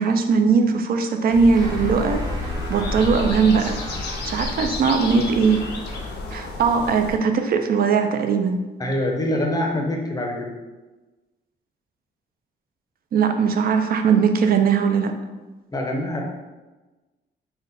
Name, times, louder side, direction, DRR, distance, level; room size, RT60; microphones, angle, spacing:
voice 1, 0.0-2.2 2.7-3.8 4.2-5.6 6.3-8.6 13.1-15.1, right 5 dB, 55° right, 6 dB, 0.4 m, -19 dB
sound 1, 1.3-7.2, left 2 dB, 65° left, 0.6 m, -30 dB
sound 2, 1.5-6.4, right 1 dB, 20° right, 0.7 m, -38 dB
voice 2, 8.8-10.5 15.7-16.2, left 1 dB, 20° left, 1 dB, 0.6 m, -24 dB
3.9 x 2.2 x 3.9 m, 1.2 s
cardioid pair, 130°, 19 cm